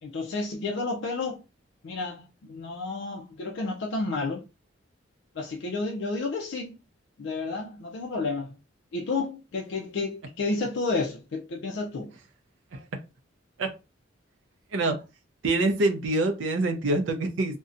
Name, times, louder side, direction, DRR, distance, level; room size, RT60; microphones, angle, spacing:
voice 1, 0.0-1.4 1.8-4.5 5.3-6.8 7.2-8.6 8.9-12.1, left 3 dB, 65° left, 0.4 m, -31 dB
voice 2, 14.7-15.0 15.4-17.6, right 2 dB, 75° right, 0.4 m, -25 dB
2.6 x 2.1 x 2.4 m
head